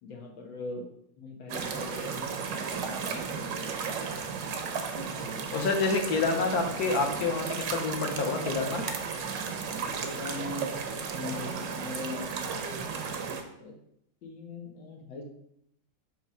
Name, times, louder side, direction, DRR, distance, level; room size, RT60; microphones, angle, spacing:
voice 1, 0.0-0.9 1.2-4.3 5.4-5.6 10.0-12.9 13.6-13.8 14.2-15.2, left 2 dB, 90° left, 0 dB, 2.0 m, -41 dB
sound 1, 1.5-13.4, right 6 dB, 75° right, 1.5 m, -34 dB
voice 2, 5.5-8.8, left 4 dB, 55° left, 3 dB, 1.5 m, -28 dB
9.0 x 3.1 x 5.0 m, 0.74 s
omnidirectional pair, 2.0 m